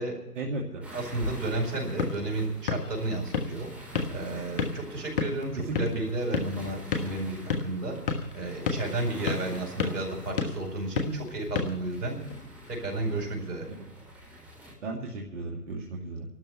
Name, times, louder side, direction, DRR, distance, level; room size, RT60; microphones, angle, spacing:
voice 1, 0.4-0.8 5.7-6.0 14.8-16.3, right 2 dB, 50° right, -2 dB, 2.3 m, -35 dB
sound 1, 0.8-14.7, equal, 5° right, 2.2 m, -45 dB
voice 2, 0.9-12.2 12.7-13.7, right 2 dB, 75° right, 0 dB, 5.1 m, -32 dB
sound 2, 1.7-12.5, left 5 dB, 35° left, 1.3 m, -34 dB
29.5 x 12.5 x 3.3 m, 0.89 s
hypercardioid pair, 150°, 46 cm